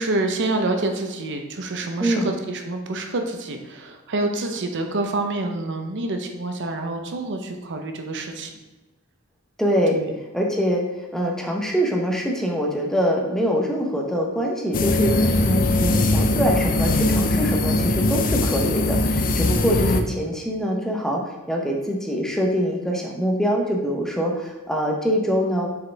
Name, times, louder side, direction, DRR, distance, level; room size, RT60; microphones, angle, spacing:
voice 1, 0.0-8.5 9.9-10.2, right 2 dB, 55° right, 5 dB, 0.7 m, -27 dB
voice 2, 2.0-2.3 9.6-10.0 10.3-25.7, equal, ahead, 0 dB, 0.8 m, -24 dB
sound 1, 14.7-20.0, left 2 dB, 40° left, 0.5 m, -21 dB
6.5 x 4.7 x 3.4 m, 1.1 s
head